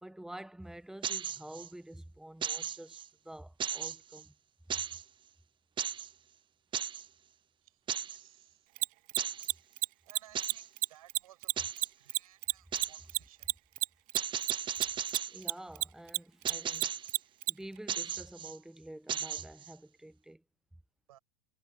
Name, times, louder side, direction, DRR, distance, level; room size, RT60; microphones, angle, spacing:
voice 1, 0.0-3.0 3.2-4.3 4.7-4.8 15.3-16.9 17.5-20.4, right 1 dB, 5° right, 1.0 m, -48 dB
sound 1, 1.0-1.7 2.4-3.1 3.6-4.2 4.7-5.0 5.8-6.1 6.7-7.1 7.9-8.2 9.2-9.5 10.4-10.7 11.6-11.9 12.7-13.0 14.2-15.4 16.5-17.1 17.9-18.6 19.1-19.7, right 8 dB, 25° right, 1.0 m, -36 dB
voice 2, 7.6-8.7 10.1-13.5 21.1-21.2, right 13 dB, 80° right, 5.8 m, -60 dB
Mechanisms, 8.8-15.5 15.8-17.5, right 24 dB, 50° right, 0.5 m, -30 dB
hypercardioid pair, 100°, 19 cm